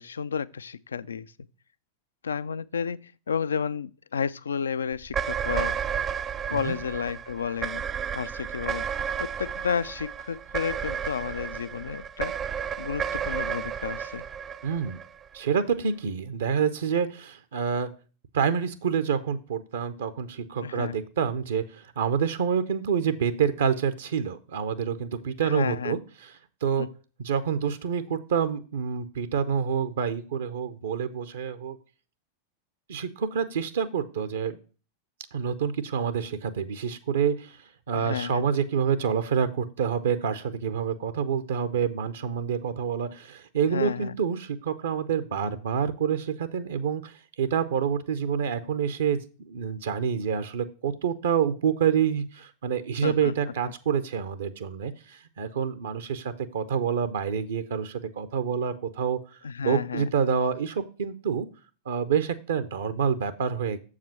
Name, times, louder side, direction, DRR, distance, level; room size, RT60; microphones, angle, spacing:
voice 1, 0.0-1.3 2.2-5.8 6.5-7.8 8.1-8.8 9.2-12.3 12.8-14.2 20.6-21.0 25.4-26.0 26.8-26.9 37.9-38.5 43.7-44.2 53.0-53.3 59.4-60.1, left 6 dB, 70° left, 0.3 m, -31 dB
sound 1, 5.0-15.5, right 8 dB, 25° right, 0.3 m, -32 dB
voice 2, 14.6-15.0 15.3-17.9 18.3-26.3 26.6-26.9 27.2-31.8 32.9-34.5 35.3-61.5 61.9-63.8, right 7 dB, 65° right, 0.7 m, -27 dB
7.3 x 4.9 x 5.8 m
figure-of-eight pair, 90°, 0 cm